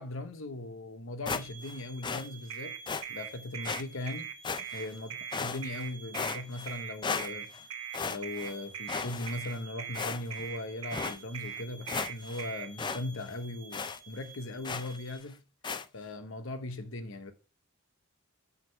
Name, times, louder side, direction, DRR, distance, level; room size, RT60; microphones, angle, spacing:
voice 1, 0.0-2.7 3.1-4.3 4.7-5.1 5.4-7.5 8.1-15.4 15.9-17.3, left 2 dB, 65° left, 0.9 m, -39 dB
sound 1, 1.2-15.2, right 3 dB, 60° right, 1.1 m, -52 dB
sound 2, 1.3-1.8 2.0-2.3 2.9-3.0 3.6-3.8 4.4-4.9 5.3-5.8 6.1-6.7 7.0-7.6 7.9-8.5 8.9-9.6 9.9-10.5 10.9-11.2 11.6-11.7 11.9-12.4 12.8-13.0 13.3-13.4 13.7-14.0 14.6-15.0 15.6-15.9, left 5 dB, 20° left, 0.4 m, -35 dB
sound 3, 2.5-12.7, right 10 dB, 90° right, 1.0 m, -40 dB
6.3 x 5.0 x 5.7 m
head